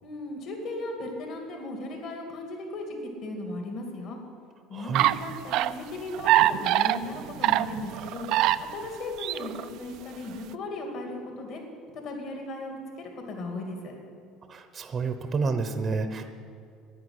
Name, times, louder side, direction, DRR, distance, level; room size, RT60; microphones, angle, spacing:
voice 1, 0.0-4.2 4.7-8.3 8.6-11.6 11.9-13.9, left 2 dB, 45° left, 2 dB, 2.6 m, -37 dB
voice 2, 4.7-5.1 14.5-16.3, right 4 dB, 25° right, 8 dB, 0.8 m, -29 dB
sound 1, 4.9-5.7 6.1-8.9 9.2-9.6, right 14 dB, 55° right, 0.4 m, -24 dB
11.0 x 9.8 x 9.9 m, 2.4 s
cardioid pair, 155°, 0 cm